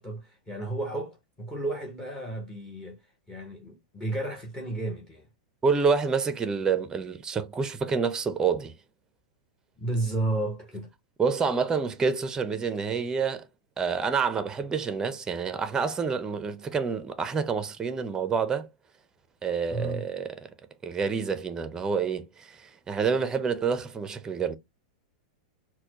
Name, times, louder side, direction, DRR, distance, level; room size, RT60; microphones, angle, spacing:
voice 1, 0.0-3.0 3.3-5.3 9.8-10.9 19.7-20.1, right 2 dB, 15° left, 1.0 m, -32 dB
voice 2, 5.6-8.7 11.2-13.5 13.8-18.7 19.4-20.5 20.8-24.5, right 5 dB, 15° right, 0.5 m, -28 dB
4.2 x 2.1 x 2.9 m
hypercardioid pair, 115°, 4 cm